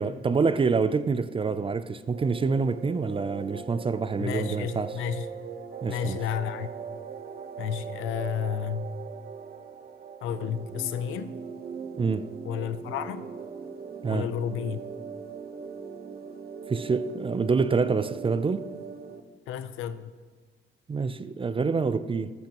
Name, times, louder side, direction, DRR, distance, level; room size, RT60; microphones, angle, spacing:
voice 1, 0.0-4.9 5.8-6.2 12.0-12.3 14.0-14.3 16.7-18.7 20.9-22.3, right 4 dB, 25° right, 0.5 m, -26 dB
sound 1, 2.1-19.2, right 6 dB, 50° right, 1.0 m, -40 dB
voice 2, 4.2-5.3 5.9-6.7 7.6-8.9 10.2-11.3 12.4-13.3 14.1-14.8 19.5-20.1, left 9 dB, 90° left, 0.7 m, -31 dB
13.5 x 13.5 x 3.0 m
cardioid pair, 90°, 20 cm